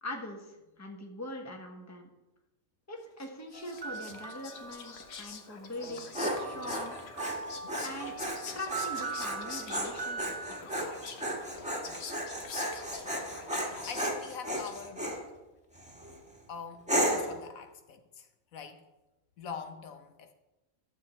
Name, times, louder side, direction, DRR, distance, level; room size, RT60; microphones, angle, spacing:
voice 1, 0.0-2.1 2.9-6.1 6.3-7.0 7.8-8.1 8.5-10.9 11.3-11.4, left 1 dB, 15° left, 2 dB, 1.1 m, -42 dB
Whispering, 3.2-15.2, left 5 dB, 55° left, 1.1 m, -46 dB
sound 1, 3.5-5.4 6.4-10.6, right 5 dB, 45° right, 0.5 m, -41 dB
Dog, 5.8-15.2 15.8-16.2 16.9-17.4, equal, 5° right, 1.4 m, -34 dB
voice 2, 12.9-13.2 13.6-15.1 16.5-18.8 19.4-20.3, left 6 dB, 75° left, 7 dB, 1.2 m, -44 dB
12.0 x 7.4 x 4.2 m, 1.0 s
omnidirectional pair, 1.5 m